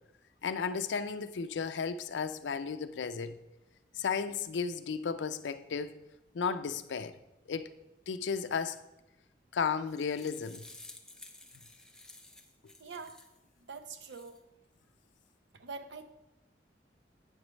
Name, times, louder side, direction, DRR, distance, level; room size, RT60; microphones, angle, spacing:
voice 1, 0.4-3.4 3.9-6.0 6.3-7.1 7.5-7.7 8.1-8.8 9.5-10.6, left 6 dB, 90° left, 0.4 m, -34 dB
sound 1, 9.6-13.4 13.9-14.4, left 2 dB, 5° left, 0.5 m, -53 dB
voice 2, 12.8-13.1 13.7-14.4 15.5-16.1, right 4 dB, 80° right, 0.6 m, -44 dB
8.6 x 3.2 x 6.2 m
head